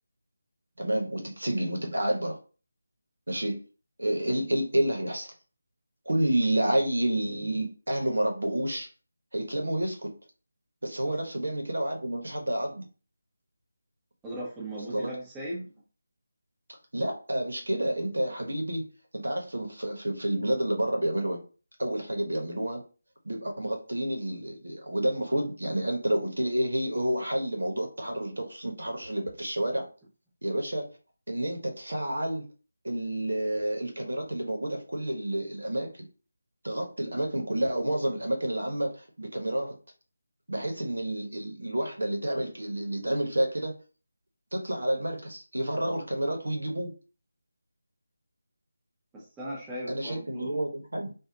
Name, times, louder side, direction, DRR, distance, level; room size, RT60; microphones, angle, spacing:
voice 1, 0.8-2.4 3.3-3.6 4.0-5.3 6.1-8.9 9.3-10.1 10.8-12.9 14.9-15.1 16.9-18.9 19.1-21.4 21.8-22.8 23.2-29.9 30.4-30.9 31.3-32.4 32.8-36.0 36.6-39.8 40.5-43.8 44.5-46.9 49.9-51.1, right 1 dB, 70° right, 2 dB, 1.2 m, -29 dB
voice 2, 14.2-15.7 49.1-50.6, right 1 dB, 10° right, -6 dB, 1.1 m, -38 dB
3.2 x 2.6 x 3.8 m, 0.36 s
figure-of-eight pair, 160°, 0 cm